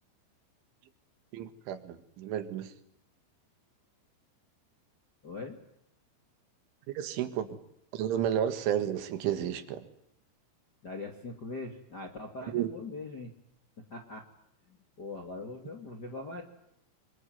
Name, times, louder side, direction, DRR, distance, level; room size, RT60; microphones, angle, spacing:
voice 1, 1.3-2.7 7.0-7.6 7.9-9.8 12.5-12.7, right 10 dB, 85° right, 10 dB, 4.2 m, -32 dB
voice 2, 5.2-5.6 10.8-13.3 13.9-14.2 14.7-16.4, left 3 dB, 35° left, 3 dB, 1.9 m, -41 dB
25.5 x 23.5 x 9.4 m, 0.74 s
omnidirectional pair, 5.4 m